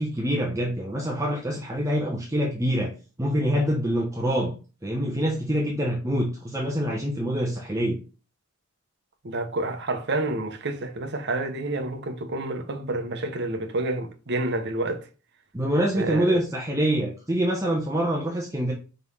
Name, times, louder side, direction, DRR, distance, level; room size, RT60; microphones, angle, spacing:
voice 1, 0.0-2.9 3.2-4.5 4.8-8.0 15.5-18.7, equal, 15° right, 1.0 m, -25 dB
voice 2, 9.2-15.1 15.9-16.4, right 2 dB, 55° right, 0.9 m, -29 dB
4.8 x 4.0 x 5.5 m
head